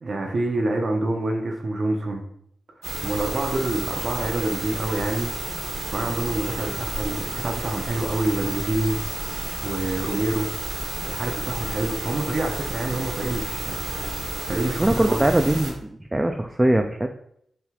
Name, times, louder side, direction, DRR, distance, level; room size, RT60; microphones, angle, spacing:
voice 1, 0.0-2.2 2.8-5.3 5.9-9.0 9.6-10.5 11.1-13.8 14.5-15.2, right 2 dB, 50° right, 2 dB, 0.7 m, -27 dB
sound 1, 2.8-15.7, right 1 dB, 80° right, 1.1 m, -31 dB
voice 2, 14.8-17.1, right 1 dB, 15° right, 5 dB, 0.3 m, -21 dB
5.8 x 3.2 x 2.4 m, 0.69 s
cardioid pair, 75°, 0 cm